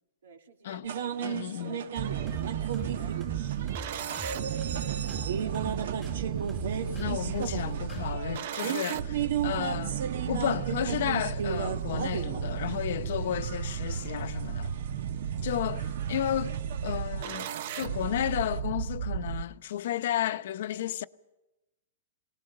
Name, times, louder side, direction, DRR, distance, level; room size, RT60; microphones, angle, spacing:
voice 1, 0.2-0.8 1.6-6.3, right 6 dB, 90° right, 2.8 m, -52 dB
sound 1, 0.8-18.6, right 8 dB, 70° right, 1.2 m, -36 dB
voice 2, 1.2-1.8 6.8-10.0 10.3-14.7 15.4-16.5 16.8-17.5 17.7-21.0, left 11 dB, 60° left, 0.8 m, -32 dB
sound 2, 2.0-8.1, right 2 dB, 10° right, 1.9 m, -43 dB
sound 3, 2.0-19.4, right 9 dB, 50° right, 0.7 m, -34 dB
23.0 x 19.0 x 6.6 m
hypercardioid pair, 165°, 0 cm